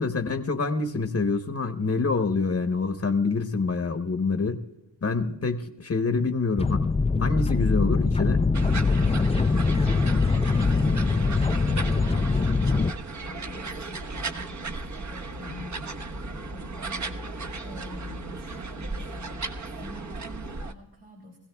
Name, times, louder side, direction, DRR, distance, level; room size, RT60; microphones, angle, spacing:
voice 1, 0.0-4.6 5.0-6.8 7.2-8.4, left 4 dB, 35° left, 6 dB, 1.0 m, -26 dB
sound 1, 6.6-12.9, left 4 dB, 15° left, 0.4 m, -23 dB
sound 2, 8.5-20.7, right 3 dB, 40° right, 1.2 m, -35 dB
voice 2, 9.3-19.3 19.7-21.4, left 1 dB, 60° right, -1 dB, 3.2 m, -46 dB
24.0 x 16.0 x 2.3 m, 0.92 s
cardioid pair, 55°, 44 cm